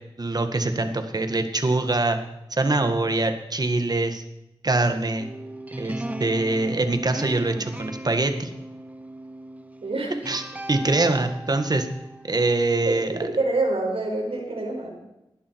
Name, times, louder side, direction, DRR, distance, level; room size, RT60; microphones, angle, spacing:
voice 1, 0.2-2.2 2.5-4.2 4.6-5.3 5.8-8.5 10.3-10.4 10.7-11.9 12.3-13.1, right 2 dB, 45° right, 7 dB, 1.8 m, -23 dB
sound 1, 5.2-13.2, right 1 dB, 15° right, 1.1 m, -38 dB
voice 2, 9.8-10.1 12.8-12.9 13.2-15.0, right 2 dB, 80° right, -1 dB, 5.0 m, -26 dB
19.5 x 11.5 x 4.7 m, 0.90 s
wide cardioid pair, 95°, 10 cm